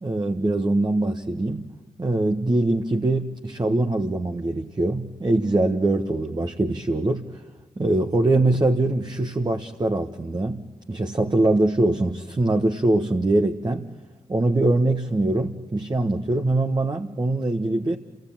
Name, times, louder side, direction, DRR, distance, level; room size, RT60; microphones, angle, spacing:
voice 1, 0.0-1.7 2.0-7.4 7.8-13.9 14.3-18.0, right 2 dB, 30° right, 3 dB, 1.4 m, -23 dB
27.0 x 17.5 x 8.9 m, 1.3 s
supercardioid pair, 45°, 14 cm